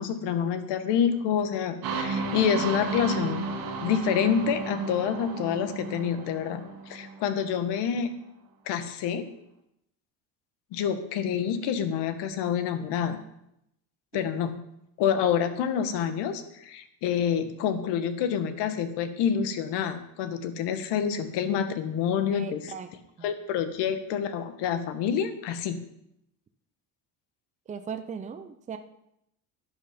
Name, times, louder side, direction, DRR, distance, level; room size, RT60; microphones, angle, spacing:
voice 1, 0.0-3.5 3.8-8.1 8.7-9.2 10.7-13.2 14.1-14.5 15.0-22.7 23.2-25.8, left 8 dB, 80° left, 9 dB, 1.5 m, -27 dB
sound 1, 1.8-7.5, right 3 dB, 55° right, 1.6 m, -33 dB
voice 2, 22.3-22.9 23.2-23.3 27.7-28.8, right 6 dB, 20° right, 8 dB, 0.6 m, -38 dB
11.5 x 9.9 x 5.2 m, 0.80 s
cardioid pair, 160°, 41 cm